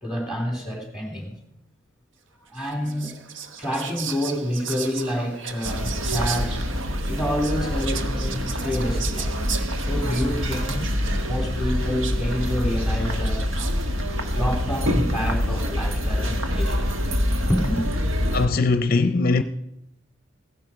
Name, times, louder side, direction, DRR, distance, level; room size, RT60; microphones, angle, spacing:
voice 1, 0.0-1.3 2.5-3.1 3.6-6.6 7.1-9.4 9.9-10.9 11.3-13.4 14.3-16.9 17.5-17.9, equal, 5° right, 3.1 m, -28 dB
Whispering, 2.6-14.0, right 7 dB, 65° right, 0.9 m, -37 dB
sound 1, 5.6-18.5, equal, 85° right, 1.5 m, -25 dB
voice 2, 18.3-19.4, left 3 dB, 50° left, 0.6 m, -20 dB
16.0 x 10.5 x 5.1 m
head